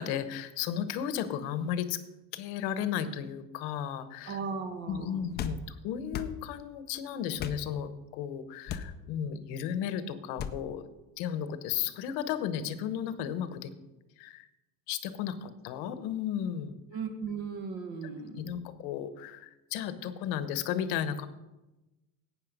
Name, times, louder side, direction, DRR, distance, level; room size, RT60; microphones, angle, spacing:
voice 1, 0.0-2.0 2.3-4.4 4.9-10.9 11.2-13.7 14.2-14.5 14.9-16.8 18.0-21.3, left 9 dB, 90° left, 12 dB, 1.1 m, -34 dB
voice 2, 4.3-5.2 16.9-18.3, right 5 dB, 55° right, 5 dB, 1.8 m, -36 dB
sound 1, 5.3-5.6 6.1-6.3 7.4-7.6 8.7-8.9 10.4-10.6, left 8 dB, 25° left, 0.5 m, -35 dB
12.0 x 8.8 x 5.3 m, 1.0 s
cardioid pair, 180°, 37 cm